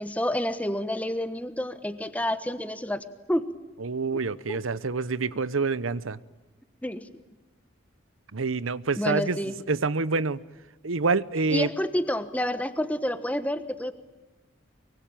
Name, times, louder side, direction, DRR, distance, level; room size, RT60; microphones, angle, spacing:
voice 1, 0.0-3.4 4.5-4.6 6.8-7.1 9.0-9.5 11.5-13.9, left 1 dB, 5° left, 1.2 m, -29 dB
voice 2, 3.8-6.2 8.3-9.4 9.7-10.4 10.8-11.7, right 4 dB, 90° right, 0.9 m, -27 dB
24.0 x 24.0 x 9.1 m
head